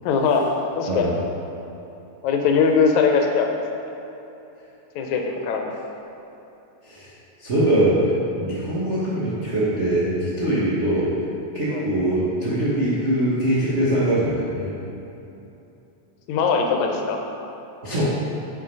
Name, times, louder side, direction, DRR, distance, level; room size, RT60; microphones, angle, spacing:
voice 1, 0.0-0.5 0.8-1.1 2.2-3.5 5.0-5.7 11.7-11.9 16.3-17.2, left 5 dB, 75° left, 3 dB, 2.0 m, -21 dB
voice 2, 7.4-11.1 11.5-14.7 17.8-18.0, right 1 dB, 70° right, -9 dB, 0.6 m, -22 dB
6.3 x 6.2 x 5.2 m, 3.0 s
omnidirectional pair, 3.4 m